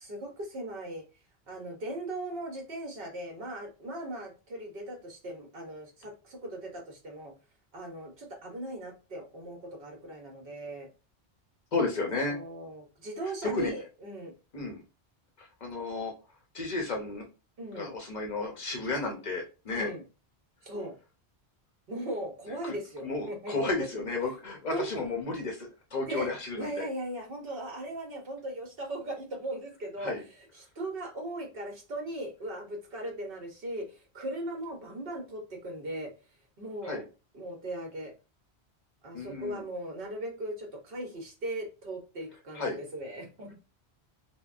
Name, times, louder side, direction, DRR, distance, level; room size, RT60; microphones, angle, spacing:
voice 1, 0.1-1.1 1.5-7.3 7.7-10.9 12.3-14.3 17.6-18.0 19.7-20.0 20.6-20.9 21.9-23.9 24.2-24.3 24.7-24.9 26.0-30.1 30.4-36.1 36.6-37.0 37.3-38.1 39.0-43.5, right 1 dB, 60° right, 2 dB, 1.0 m, -38 dB
voice 2, 11.7-12.4 13.4-13.7 14.5-14.8 15.4-16.1 16.5-17.3 17.7-19.9 22.6-22.8 23.0-26.9 30.0-30.2 36.8-37.0 39.1-39.6 42.6-42.8, left 3 dB, 50° left, 2 dB, 0.7 m, -33 dB
3.4 x 2.1 x 2.4 m, 0.32 s
omnidirectional pair, 1.1 m